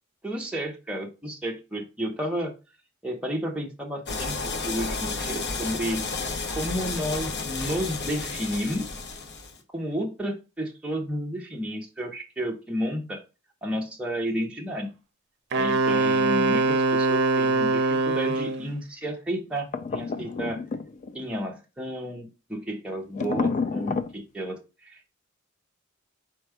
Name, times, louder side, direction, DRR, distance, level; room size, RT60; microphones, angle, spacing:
voice 1, 0.2-2.5 3.0-6.1 6.5-8.9 9.7-13.2 13.6-14.9 15.5-20.6 21.1-25.2, equal, 5° right, -1 dB, 0.7 m, -32 dB
sound 1, 4.1-9.6, left 3 dB, 55° left, 0.8 m, -32 dB
Wind instrument woodwind instrument, 15.5-18.7, right 3 dB, 60° right, 0.5 m, -23 dB
sound 2, 19.7-21.2 23.1-24.1, left 4 dB, 40° left, 0.3 m, -29 dB
4.4 x 2.2 x 4.7 m, 0.29 s
head